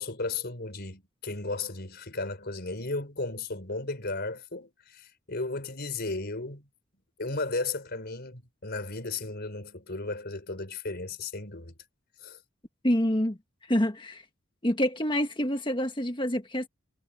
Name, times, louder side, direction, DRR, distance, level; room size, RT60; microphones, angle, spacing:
voice 1, 0.0-6.7 7.2-11.7 12.2-12.4, left 3 dB, 50° left, 4.6 m, -35 dB
voice 2, 12.8-13.4 13.7-14.2 14.6-16.7, equal, 25° left, 1.6 m, -27 dB
head